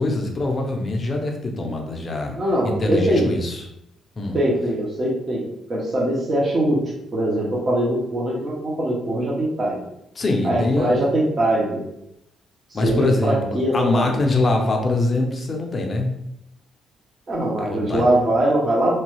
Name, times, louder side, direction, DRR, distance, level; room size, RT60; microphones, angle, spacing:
voice 1, 0.0-2.4 2.6-3.6 4.2-4.4 10.1-11.1 12.7-16.1 17.6-18.1, left 2 dB, 30° left, 2 dB, 0.6 m, -23 dB
voice 2, 2.3-3.3 4.3-5.4 5.7-6.8 7.1-9.8 10.4-11.8 12.8-14.2 17.3-19.0, right 1 dB, 35° right, -5 dB, 0.8 m, -22 dB
3.0 x 2.3 x 3.1 m, 0.83 s
cardioid pair, 115°, 0 cm